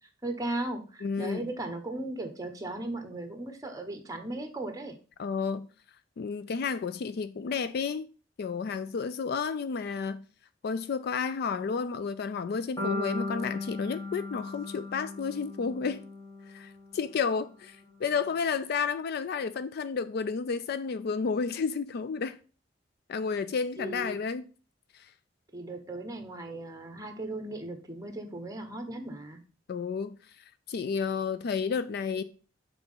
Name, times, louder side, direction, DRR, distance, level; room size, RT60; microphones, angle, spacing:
voice 1, 0.2-5.0 23.8-24.2 25.5-29.4, right 2 dB, 20° right, 1.0 m, -37 dB
voice 2, 1.0-1.5 5.2-5.7 6.2-8.1 8.4-10.2 10.6-16.0 16.5-22.4 23.1-24.4 24.9-25.1 29.7-30.2 30.7-32.2, left 5 dB, 55° left, 0.4 m, -31 dB
sound 1, 12.8-16.9, left 2 dB, 25° left, 1.5 m, -36 dB
5.8 x 4.0 x 5.6 m
head